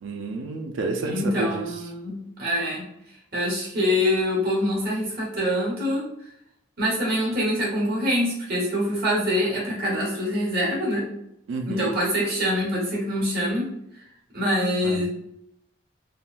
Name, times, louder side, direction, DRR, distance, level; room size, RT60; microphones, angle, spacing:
voice 1, 0.0-1.8 11.5-11.9 14.8-15.1, right 3 dB, 75° right, 3 dB, 0.4 m, -30 dB
voice 2, 1.0-2.8 3.3-6.0 6.8-11.0 11.7-13.7 14.3-15.1, equal, 50° right, -6 dB, 1.4 m, -25 dB
3.5 x 2.2 x 2.4 m, 0.79 s
head